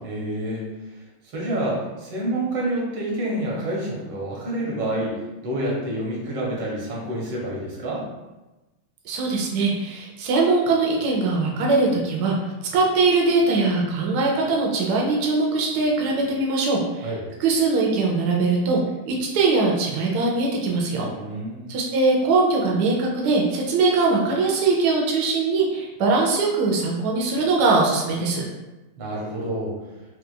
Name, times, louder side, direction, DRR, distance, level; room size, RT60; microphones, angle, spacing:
voice 1, 0.0-0.6 1.3-8.0 17.0-17.2 21.1-21.7 29.0-29.7, right 1 dB, 60° right, -4 dB, 1.4 m, -28 dB
voice 2, 9.0-12.4 12.7-17.1 17.4-18.8 19.1-21.1 21.7-28.4, right 3 dB, 85° right, -2 dB, 0.8 m, -21 dB
4.5 x 2.3 x 2.2 m, 1.1 s
omnidirectional pair, 2.4 m